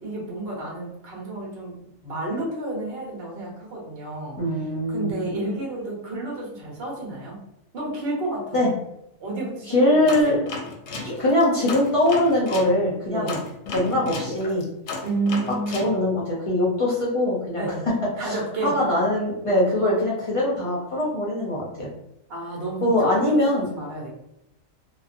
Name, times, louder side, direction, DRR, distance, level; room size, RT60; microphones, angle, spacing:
voice 1, 0.0-7.4 7.7-8.7 9.2-10.3 13.1-13.3 15.0-15.9 17.6-17.8 18.2-18.7 22.3-24.1, right 2 dB, 50° right, -3 dB, 1.0 m, -31 dB
voice 2, 4.4-5.1 8.5-8.7 9.7-10.4 11.0-13.4 13.7-14.7 15.7-17.9 18.2-21.9 22.8-23.7, left 1 dB, 40° left, -5 dB, 0.5 m, -22 dB
sound 1, 10.1-12.7 13.3-15.9, left 3 dB, 65° left, 0.8 m, -33 dB
2.6 x 2.2 x 2.5 m, 0.83 s
omnidirectional pair, 1.4 m